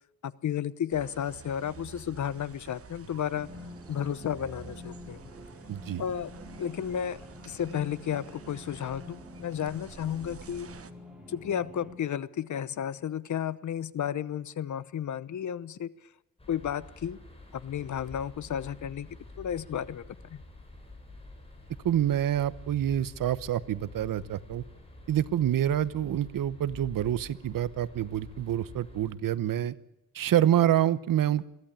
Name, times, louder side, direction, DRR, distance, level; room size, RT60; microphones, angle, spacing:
voice 1, 0.2-3.5 3.9-5.2 6.0-6.3 6.6-7.2 7.5-10.7 11.3-15.9 16.5-17.2 17.5-19.1 19.4-20.4, left 9 dB, 60° left, 18 dB, 0.9 m, -33 dB
sound 1, 0.9-10.9, right 6 dB, 45° right, 1.3 m, -50 dB
sound 2, 3.3-11.9, left 2 dB, 5° right, 4.5 m, -47 dB
voice 2, 5.7-6.0 21.8-24.6 25.1-29.7 30.1-31.5, right 11 dB, 80° right, 17 dB, 1.0 m, -27 dB
sound 3, 16.4-29.1, left 2 dB, 15° left, 5.7 m, -48 dB
22.5 x 15.5 x 8.7 m, 0.85 s
wide cardioid pair, 145°, 33 cm